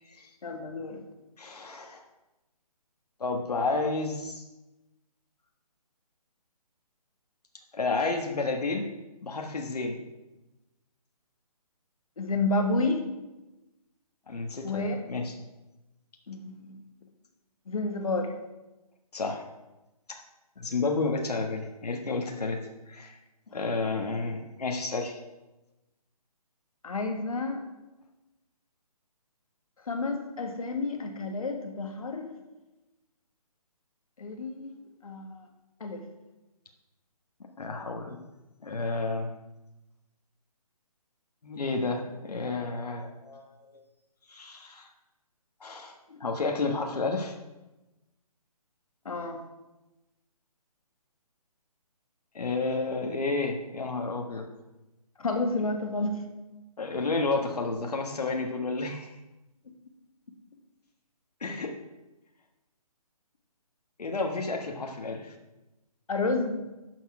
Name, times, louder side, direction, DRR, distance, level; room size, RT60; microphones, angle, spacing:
voice 1, 0.4-1.0 12.2-13.0 14.6-15.0 16.3-16.8 17.7-18.3 23.5-23.6 26.8-27.6 29.9-32.3 34.2-35.4 35.8-36.0 49.1-49.4 55.2-56.2 66.1-66.7, left 2 dB, 65° left, 4 dB, 1.8 m, -30 dB
voice 2, 1.4-2.0 3.2-4.5 7.7-8.9 9.2-10.0 14.3-15.4 19.1-19.4 20.1-20.2 20.6-23.2 23.5-25.2 37.6-38.2 38.6-39.3 41.4-43.8 44.3-44.9 45.6-47.3 52.3-54.4 56.8-59.1 61.4-61.7 64.0-65.3, left 3 dB, 80° left, 3 dB, 1.5 m, -31 dB
11.0 x 6.4 x 4.8 m, 1.0 s
hypercardioid pair, 170°, 20 cm